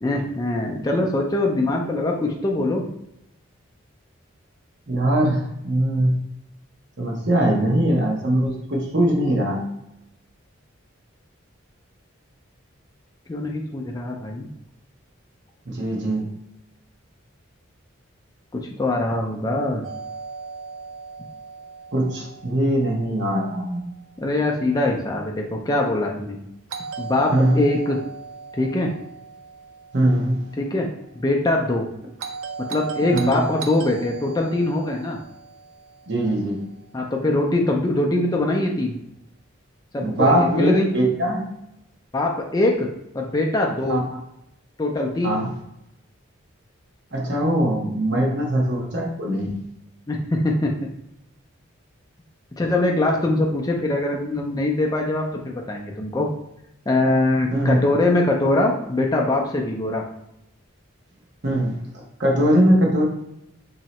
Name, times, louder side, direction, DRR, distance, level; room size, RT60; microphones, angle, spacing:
voice 1, 0.0-2.9 13.3-14.5 18.5-19.9 24.2-26.4 27.0-28.0 28.5-28.9 30.6-30.9 31.1-31.9 32.6-35.2 36.9-39.0 39.9-40.9 42.1-42.9 43.1-44.0 44.8-45.4 48.1-48.3 50.1-50.9 52.6-56.3 56.9-60.0, left 2 dB, 20° left, 0 dB, 0.4 m, -22 dB
voice 2, 4.9-6.2 7.0-9.6 15.7-16.3 21.9-23.8 27.3-27.6 29.9-30.5 33.1-33.4 36.1-36.6 40.0-41.4 43.9-44.0 45.2-45.5 47.1-49.6 57.5-57.8 61.4-63.0, right 1 dB, 55° right, -1 dB, 1.0 m, -21 dB
Doorbell, 19.8-23.8 26.7-30.9 32.2-36.6, right 5 dB, 75° right, 0.4 m, -37 dB
3.0 x 2.8 x 4.2 m, 0.82 s
head